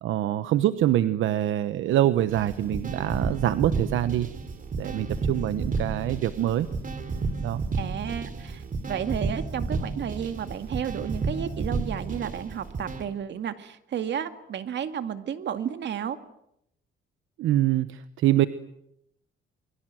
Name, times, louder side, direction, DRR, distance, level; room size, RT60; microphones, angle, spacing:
voice 1, 0.0-4.3 4.8-6.7 7.4-7.6 17.4-18.5, right 13 dB, 80° right, 13 dB, 1.0 m, -25 dB
sound 1, 2.3-13.0, right 4 dB, 40° right, 3.8 m, -32 dB
voice 2, 7.8-16.2, right 9 dB, 65° right, 9 dB, 2.2 m, -32 dB
28.5 x 23.0 x 7.7 m, 0.78 s
cardioid pair, 90°, 20 cm